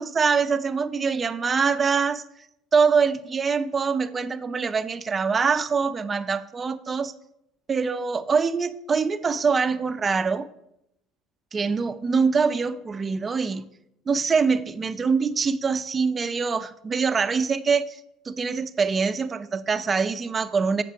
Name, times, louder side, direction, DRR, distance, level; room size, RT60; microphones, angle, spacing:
voice 1, 0.0-2.2 2.7-7.1 7.7-10.5 11.5-13.7 14.1-18.0 18.3-20.8, right 5 dB, 30° right, 13 dB, 0.5 m, -24 dB
7.9 x 5.9 x 4.9 m, 0.82 s
figure-of-eight pair, 60°, 0 cm